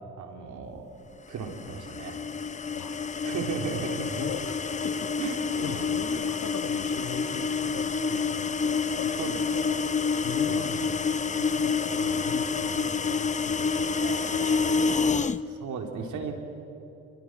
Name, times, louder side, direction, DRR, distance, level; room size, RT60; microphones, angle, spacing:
voice 1, 0.2-0.8 1.3-2.2 3.2-4.2 5.2-5.9 9.2-9.7 10.5-10.7 13.9-14.8 15.5-16.3, right 5 dB, 75° right, 3 dB, 3.8 m, -36 dB
sound 1, 1.5-15.4, left 5 dB, 25° left, 0.8 m, -28 dB
voice 2, 4.0-4.6 4.8-5.1 5.6-9.9 10.2-10.9 11.3-14.0 14.3-14.9, left 8 dB, 85° left, 9 dB, 1.7 m, -40 dB
29.5 x 23.0 x 6.4 m, 2.9 s
cardioid pair, 90°, 30 cm